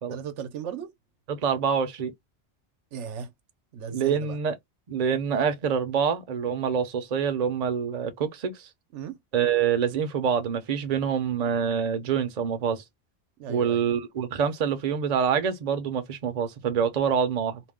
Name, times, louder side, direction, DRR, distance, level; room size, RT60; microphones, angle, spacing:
voice 1, 0.1-0.9 2.9-3.3 3.7-4.4 8.9-9.2 13.4-13.9, right 7 dB, 85° right, 1.0 m, -36 dB
voice 2, 1.3-2.1 3.9-4.6 4.9-8.7 9.3-12.8 13.5-17.6, right 7 dB, 45° right, 0.6 m, -26 dB
2.5 x 2.2 x 3.4 m
omnidirectional pair, 1.2 m